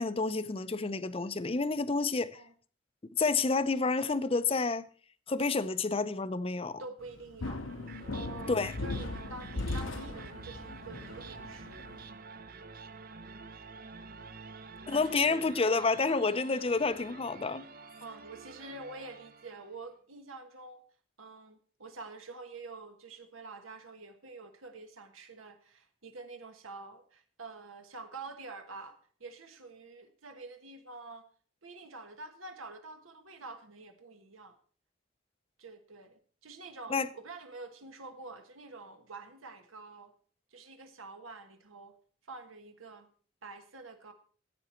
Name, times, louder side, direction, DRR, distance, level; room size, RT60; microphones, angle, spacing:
voice 1, 0.0-2.4 3.2-4.8 5.3-6.8 8.5-8.7 14.9-17.6 36.9-37.1, left 4 dB, 30° left, 0.5 m, -29 dB
voice 2, 6.8-7.7 8.1-12.2 14.9-16.2 18.0-20.8 21.2-31.3 31.6-34.6 35.6-40.1 40.5-42.0 42.3-43.1 43.4-44.1, right 3 dB, 85° right, 1.4 m, -47 dB
sound 1, 7.1-12.0, left 2 dB, 75° left, 0.9 m, -38 dB
sound 2, 7.6-19.8, right 4 dB, 45° right, 0.7 m, -48 dB
14.5 x 8.7 x 4.4 m
head